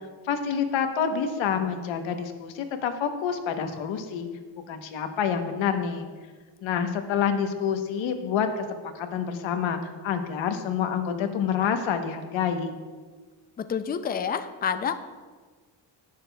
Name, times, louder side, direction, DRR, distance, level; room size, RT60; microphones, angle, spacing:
voice 1, 0.3-4.3 4.7-6.1 6.6-8.7 8.9-12.7, left 7 dB, 85° left, 6 dB, 1.0 m, -27 dB
voice 2, 13.6-14.9, left 7 dB, 25° left, 9 dB, 0.3 m, -28 dB
18.0 x 6.6 x 2.3 m, 1.4 s
cardioid pair, 135°, 46 cm